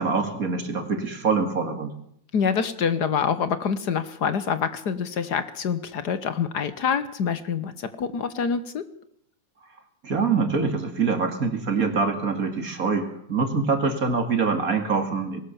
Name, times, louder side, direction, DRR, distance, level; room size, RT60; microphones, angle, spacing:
voice 1, 0.0-1.9 10.0-15.4, right 4 dB, 50° right, 6 dB, 2.7 m, -24 dB
voice 2, 2.3-8.9, left 6 dB, 65° left, 13 dB, 1.6 m, -26 dB
20.5 x 18.0 x 7.0 m, 0.69 s
omnidirectional pair, 2.0 m